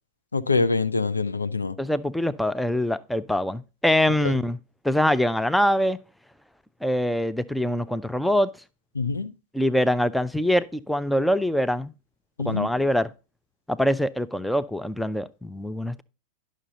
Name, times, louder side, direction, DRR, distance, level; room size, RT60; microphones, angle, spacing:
voice 1, 0.3-1.8 4.2-4.3 8.9-9.3 12.4-12.7, left 4 dB, 80° left, 0.6 m, -25 dB
voice 2, 1.8-4.6 4.8-6.0 6.8-8.5 9.5-11.9 12.4-13.1 13.7-16.0, left 1 dB, ahead, 0.5 m, -24 dB
11.0 x 6.4 x 3.9 m
figure-of-eight pair, 90°, 0 cm